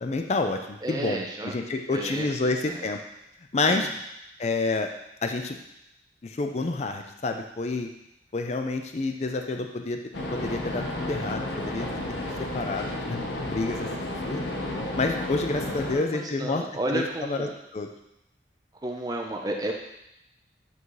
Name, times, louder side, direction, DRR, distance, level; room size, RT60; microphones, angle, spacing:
voice 1, 0.0-3.0 3.5-3.9 4.4-4.9 5.2-5.6 6.2-7.9 8.3-10.0 10.3-14.5 15.0-16.6 16.9-17.5 17.7-17.9, left 3 dB, 35° left, 5 dB, 0.4 m, -29 dB
voice 2, 0.8-1.5 1.9-2.9 3.7-3.9 15.9-17.5 18.8-19.7, right 1 dB, 20° right, 1 dB, 0.5 m, -32 dB
sound 1, 10.1-15.9, left 1 dB, 80° left, 0.8 m, -32 dB
8.0 x 2.7 x 4.7 m, 0.83 s
head